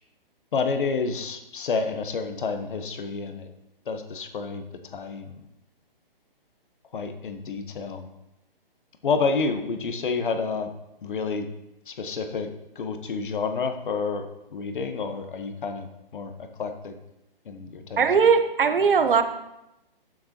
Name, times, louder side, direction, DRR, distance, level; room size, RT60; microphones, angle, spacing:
voice 1, 0.5-3.4 3.9-4.6 4.9-5.4 6.9-8.1 9.0-10.7 11.0-11.5 11.9-16.3 16.6-16.9 17.5-18.0, left 4 dB, 60° left, 7 dB, 1.3 m, -29 dB
voice 2, 18.0-19.2, right 6 dB, 65° right, 8 dB, 1.1 m, -19 dB
12.0 x 8.5 x 3.0 m, 0.88 s
hypercardioid pair, 145°, 29 cm